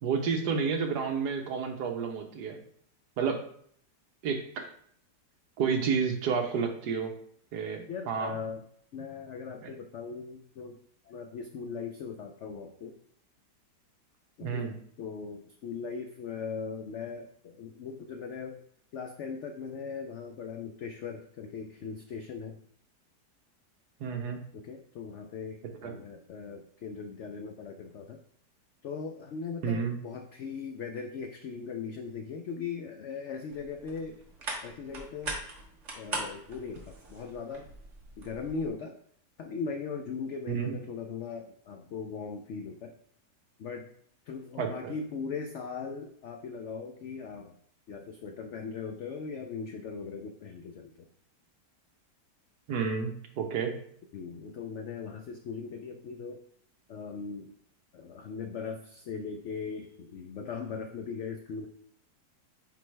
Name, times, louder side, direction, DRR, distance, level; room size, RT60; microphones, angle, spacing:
voice 1, 0.0-2.6 3.2-3.4 4.2-4.7 5.6-7.1 7.5-8.3 9.6-9.7 14.4-14.7 24.0-24.4 25.8-25.9 29.6-29.9 40.5-40.8 44.6-44.9 52.7-53.8, right 6 dB, 75° right, 4 dB, 1.4 m, -30 dB
voice 2, 7.9-8.6 8.9-10.8 11.1-13.0 14.4-18.6 18.9-22.6 24.5-28.2 28.8-34.2 34.6-35.4 36.0-37.7 38.2-39.0 39.4-43.0 43.6-43.9 44.3-47.5 47.9-51.1 54.1-56.4 56.9-57.5 57.9-61.7, left 5 dB, 80° left, 4 dB, 0.6 m, -39 dB
sound 1, 33.5-38.7, right 2 dB, 50° right, 1.5 m, -41 dB
8.8 x 3.4 x 3.3 m, 0.63 s
omnidirectional pair, 1.8 m